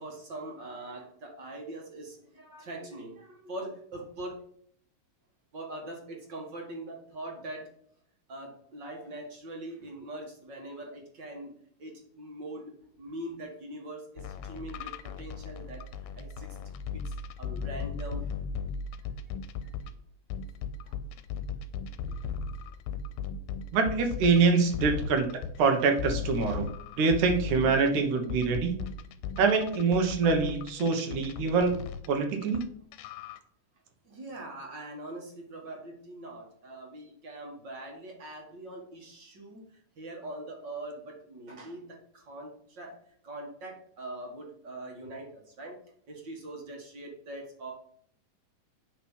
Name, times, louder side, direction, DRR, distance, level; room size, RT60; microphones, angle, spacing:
voice 1, 0.0-4.3 5.5-7.7 8.3-11.5 11.8-15.8 16.2-16.5 16.9-17.0 17.4-18.3 19.6-19.7 20.9-21.0 34.1-39.6 40.0-42.9 43.2-45.8 46.1-47.7, right 1 dB, 40° right, 0 dB, 1.9 m, -42 dB
sound 1, 14.2-19.9 20.3-32.6 32.9-33.4, left 6 dB, 80° left, 2.2 m, -37 dB
voice 2, 23.7-25.3 25.6-26.7 27.0-28.8 29.4-31.7 32.1-32.6, right 4 dB, 70° right, 5 dB, 2.5 m, -25 dB
8.7 x 5.9 x 5.6 m, 0.64 s
omnidirectional pair, 3.9 m